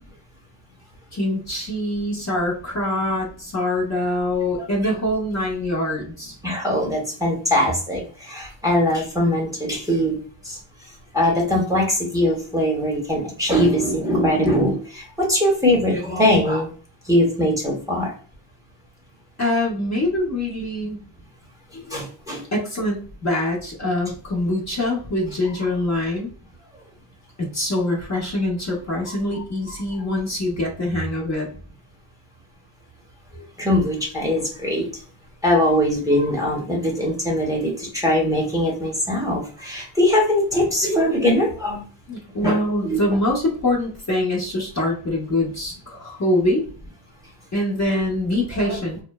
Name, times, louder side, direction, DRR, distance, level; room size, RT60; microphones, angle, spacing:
voice 1, 1.1-6.3 19.4-21.0 21.8-22.0 22.5-26.3 27.4-31.5 42.1-46.6 47.5-49.0, left 1 dB, 35° left, -3 dB, 0.9 m, -24 dB
voice 2, 6.4-10.2 10.4-10.6 10.8-16.7 17.0-18.1 21.9-22.4 29.0-29.1 33.3-35.0 35.4-41.9 42.4-42.6 42.8-43.0 48.6-48.8, left 1 dB, 5° right, -2 dB, 0.9 m, -21 dB
3.1 x 2.0 x 2.2 m, 0.41 s
cardioid pair, 110°, 50 cm